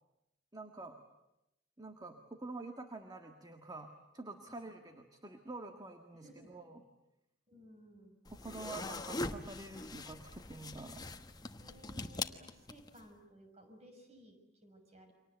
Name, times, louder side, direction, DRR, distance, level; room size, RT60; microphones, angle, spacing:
voice 1, 0.5-1.0 1.8-6.8 8.4-11.0, right 2 dB, 20° right, 5 dB, 1.7 m, -47 dB
voice 2, 6.1-6.5 7.5-8.2 11.6-15.1, right 1 dB, 35° right, 5 dB, 5.9 m, -58 dB
sound 1, 8.3-13.0, left 2 dB, 20° left, 1.1 m, -42 dB
29.5 x 24.5 x 8.1 m, 0.89 s
head